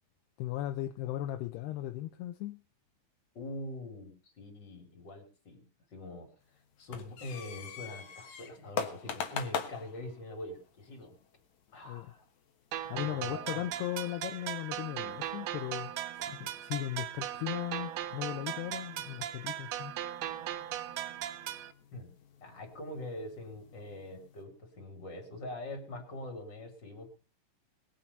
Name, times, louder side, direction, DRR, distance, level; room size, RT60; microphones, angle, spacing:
voice 1, 0.4-2.6 11.9-12.1 12.9-19.9, left 14 dB, 80° left, 2.6 m, -37 dB
voice 2, 3.3-5.6 5.9-6.3 6.8-11.2 11.7-12.2 13.0-13.7 21.9-22.1 22.4-27.1, left 1 dB, 30° left, 3.2 m, -43 dB
sound 1, 6.4-24.4, left 7 dB, 60° left, 2.1 m, -45 dB
sound 2, 12.7-21.7, right 12 dB, 75° right, 2.4 m, -38 dB
20.5 x 7.7 x 5.5 m
omnidirectional pair, 5.0 m